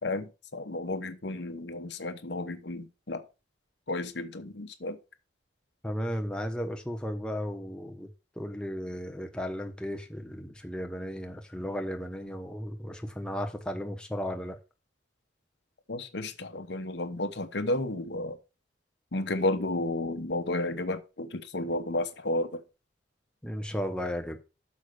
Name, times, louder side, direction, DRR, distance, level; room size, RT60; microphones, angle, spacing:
voice 1, 0.0-3.2 3.9-5.0 15.9-18.4 19.1-22.6, left 2 dB, 65° left, 1.0 m, -32 dB
voice 2, 5.8-8.1 8.4-14.6 23.4-24.4, equal, 5° left, 0.9 m, -35 dB
6.4 x 5.3 x 6.7 m
head